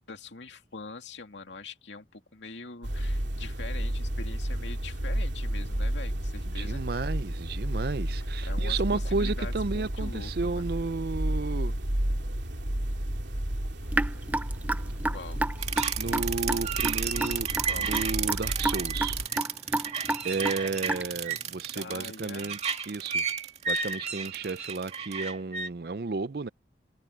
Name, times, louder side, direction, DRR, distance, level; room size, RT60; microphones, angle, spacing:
voice 1, 0.1-6.8 8.4-10.6 14.9-15.4 17.6-17.9 21.7-22.6, left 3 dB, 85° left, 2.5 m, -43 dB
sound 1, 2.8-19.3, right 1 dB, 85° right, 2.6 m, -32 dB
voice 2, 6.6-11.8 16.0-19.2 20.2-23.2 23.7-26.5, right 3 dB, 55° right, 0.5 m, -33 dB
Raindrop / Drip, 13.9-21.3, right 1 dB, 10° right, 0.5 m, -30 dB
sound 2, 15.6-25.7, right 6 dB, 35° right, 2.4 m, -32 dB
head